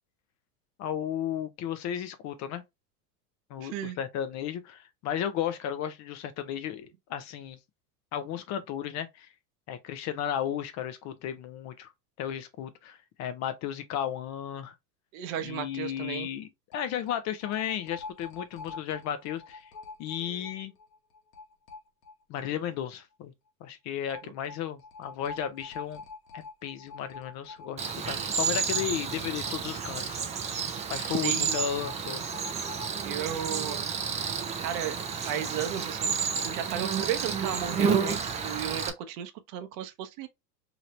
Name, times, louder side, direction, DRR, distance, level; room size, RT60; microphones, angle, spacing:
voice 1, 0.8-2.6 3.5-7.6 8.1-9.3 9.7-11.9 12.2-14.7 15.4-19.7 20.0-20.7 22.3-23.3 23.6-26.0 26.3-30.5 30.9-32.2, left 9 dB, 35° left, 0.5 m, -34 dB
voice 2, 3.6-4.0 15.1-16.3 24.2-24.3 31.1-31.6 33.0-33.9 34.6-36.1 36.4-40.3, right 10 dB, 60° right, 0.8 m, -34 dB
sound 1, 15.4-15.5 15.7-15.8 16.7-22.5 22.7-22.8 24.1-30.2 30.5-30.6 31.5-33.0, left 4 dB, 90° left, 1.0 m, -46 dB
Cricket, 27.8-38.9, right 6 dB, 15° right, 0.3 m, -31 dB
2.9 x 2.7 x 3.1 m
hypercardioid pair, 100°, 47 cm